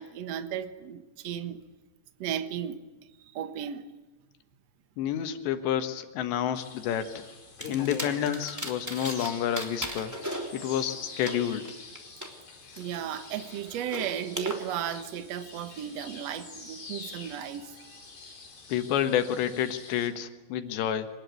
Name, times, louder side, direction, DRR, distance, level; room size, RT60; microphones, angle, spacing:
voice 1, 0.0-1.6 2.2-2.8 3.3-3.9 12.8-18.0 20.7-20.8, right 9 dB, 65° right, 10 dB, 1.7 m, -35 dB
voice 2, 5.0-7.2 7.7-10.1 10.5-11.8 18.7-21.1, left 10 dB, 85° left, 8 dB, 3.7 m, -29 dB
sound 1, 6.5-20.1, left 4 dB, 60° left, 6.6 m, -45 dB
sound 2, 7.6-9.3 9.6-12.3 12.7-14.6, equal, 5° right, 2.3 m, -38 dB
25.0 x 20.0 x 9.4 m, 1.2 s
omnidirectional pair, 4.9 m